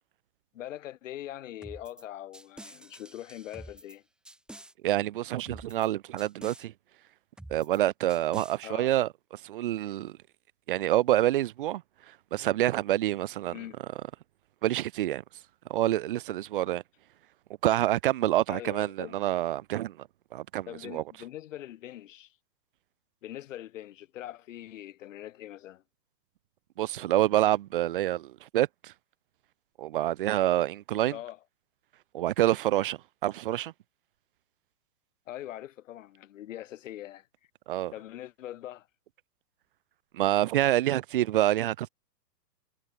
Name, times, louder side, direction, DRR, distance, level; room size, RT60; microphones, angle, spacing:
voice 1, 0.5-4.0 8.6-8.9 13.5-13.8 18.5-19.2 20.7-22.3 23.2-25.8 31.1-31.4 35.3-37.3 37.9-38.9, left 13 dB, 50° left, 4.6 m, -42 dB
sound 1, 1.6-2.0 2.3-4.0 4.3-4.7 5.5-5.9 6.2-6.7 7.4-7.8 8.1-8.6, right 1 dB, ahead, 4.9 m, -48 dB
voice 2, 4.8-6.7 7.5-9.1 9.4-10.1 10.7-11.8 12.3-13.6 14.6-15.2 15.7-16.8 17.6-20.1 20.3-21.0 26.8-28.9 29.8-31.2 32.1-33.7 37.7-37.9 40.1-41.9, right 14 dB, 35° right, 0.8 m, -27 dB
hypercardioid pair, 165°, 49 cm